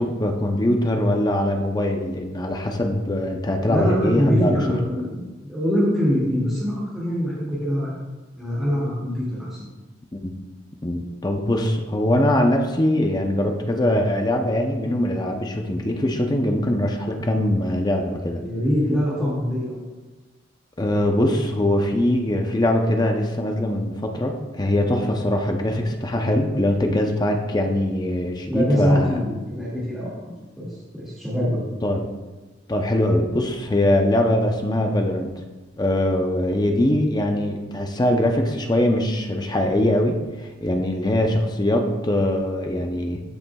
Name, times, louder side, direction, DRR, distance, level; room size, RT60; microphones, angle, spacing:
voice 1, 0.0-4.5 10.1-10.3 10.8-18.4 20.8-29.2 31.8-32.1 32.7-35.3 35.8-40.1 40.6-43.2, left 1 dB, 20° left, 3 dB, 0.6 m, -22 dB
voice 2, 3.6-7.9 8.4-9.7 18.4-19.7 28.5-30.7 30.9-31.6, equal, ahead, -10 dB, 2.1 m, -23 dB
13.5 x 6.9 x 2.3 m, 1.2 s
head